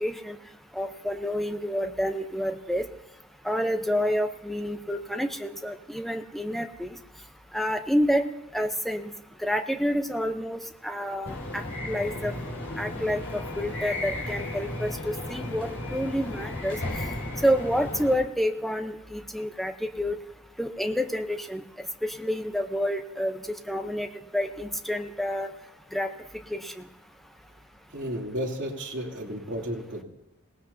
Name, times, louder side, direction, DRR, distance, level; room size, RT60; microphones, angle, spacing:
voice 1, 0.0-0.4 0.8-2.9 3.4-7.0 7.5-8.2 8.5-9.1 9.4-12.3 12.8-14.9 15.3-16.8 17.4-20.1 20.6-21.6 22.0-23.4 23.7-24.1 24.3-25.5 25.9-26.1 26.5-26.8, equal, ahead, 5 dB, 0.8 m, -28 dB
sound 1, 11.3-18.1, left 1 dB, 65° left, 5.8 m, -34 dB
voice 2, 27.9-30.0, equal, 55° right, -2 dB, 3.2 m, -33 dB
28.0 x 18.5 x 2.8 m, 0.87 s
head